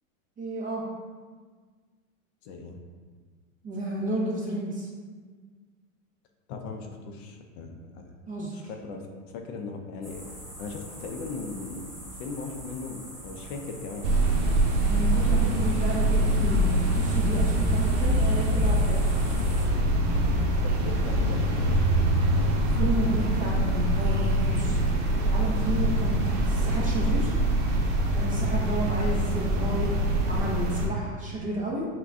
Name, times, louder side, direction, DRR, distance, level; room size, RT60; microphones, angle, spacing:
voice 1, 0.4-0.9 3.6-4.9 8.3-8.6 14.9-19.1 22.7-24.8 25.2-27.3 28.1-29.9 30.2-31.8, right 1 dB, 20° right, -3 dB, 0.5 m, -32 dB
voice 2, 2.4-2.8 6.5-8.1 8.5-10.2 10.6-14.2 20.6-22.0, left 4 dB, 55° left, 3 dB, 0.5 m, -38 dB
sound 1, 10.0-19.7, equal, ahead, 0.8 m, -44 dB
sound 2, 14.0-30.9, right 1 dB, 65° right, 0.8 m, -24 dB
6.0 x 2.2 x 2.6 m, 1.5 s
supercardioid pair, 140°, 41 cm